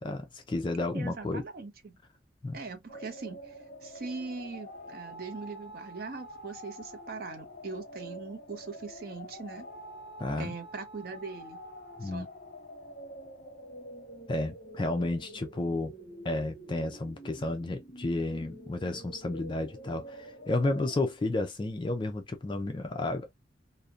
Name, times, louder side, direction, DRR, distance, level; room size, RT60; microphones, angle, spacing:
voice 1, 0.0-1.4 2.4-2.6 10.2-10.5 12.0-12.3 14.3-15.9 16.2-23.3, left 2 dB, 25° left, 0.3 m, -32 dB
voice 2, 0.9-2.0 2.5-3.6 3.8-9.7 10.4-11.6 12.0-12.3, right 4 dB, 50° right, 0.6 m, -41 dB
sound 1, 2.9-21.0, equal, 45° left, 0.8 m, -47 dB
2.6 x 2.1 x 2.3 m
head